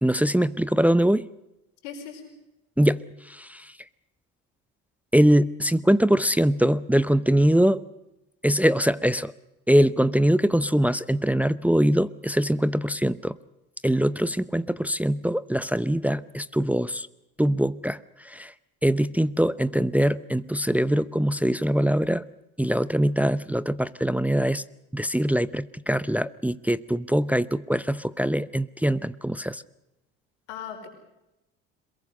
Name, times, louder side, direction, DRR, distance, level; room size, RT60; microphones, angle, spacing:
voice 1, 0.0-1.2 2.8-3.0 3.3-3.7 5.1-7.8 8.4-9.3 9.7-13.4 13.8-17.1 17.4-18.0 18.2-18.5 18.8-22.2 22.6-24.6 24.9-29.6, equal, 5° right, 16 dB, 0.8 m, -22 dB
voice 2, 1.8-2.3 30.5-30.9, left 7 dB, 85° left, 5 dB, 5.0 m, -38 dB
22.5 x 22.0 x 6.5 m, 0.91 s
hypercardioid pair, 65°, 35 cm